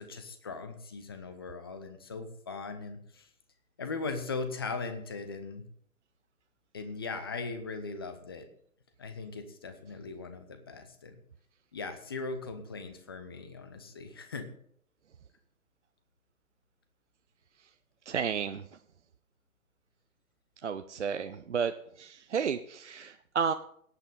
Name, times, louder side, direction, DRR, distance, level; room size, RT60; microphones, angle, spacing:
voice 1, 0.0-3.3 3.8-5.6 6.7-8.5 9.0-11.2 11.7-14.5, left 4 dB, 15° left, 9 dB, 0.6 m, -39 dB
voice 2, 18.1-18.6 20.6-21.7 22.0-23.5, right 6 dB, 55° right, 10 dB, 0.6 m, -32 dB
17.5 x 8.4 x 3.8 m, 0.65 s
figure-of-eight pair, 130°, 43 cm